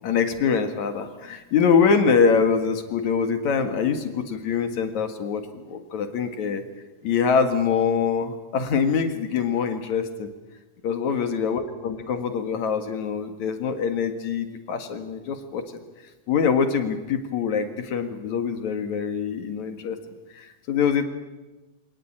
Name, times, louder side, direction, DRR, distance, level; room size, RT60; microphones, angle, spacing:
voice 1, 0.0-6.6 7.0-10.3 10.8-15.6 16.3-20.0 20.3-21.0, left 6 dB, 65° left, 7 dB, 3.0 m, -24 dB
25.0 x 18.5 x 8.8 m, 1.1 s
omnidirectional pair, 3.7 m